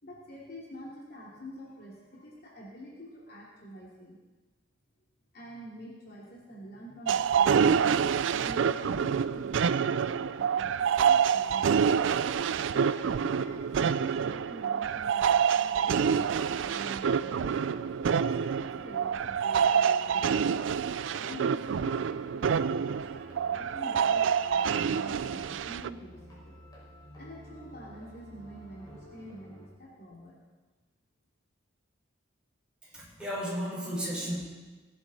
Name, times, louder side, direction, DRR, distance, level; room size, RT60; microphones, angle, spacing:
voice 1, 0.0-4.2 5.3-8.0 8.3-11.9 12.6-20.7 21.2-26.6 27.2-30.4, equal, 50° left, -4 dB, 2.8 m, -47 dB
sound 1, 7.1-25.9, right 7 dB, 75° right, 0.4 m, -27 dB
sound 2, 18.6-29.7, equal, 20° left, 5.7 m, -51 dB
voice 2, 32.8-34.4, equal, 5° right, -8 dB, 5.7 m, -34 dB
19.0 x 10.5 x 4.2 m, 1.3 s
head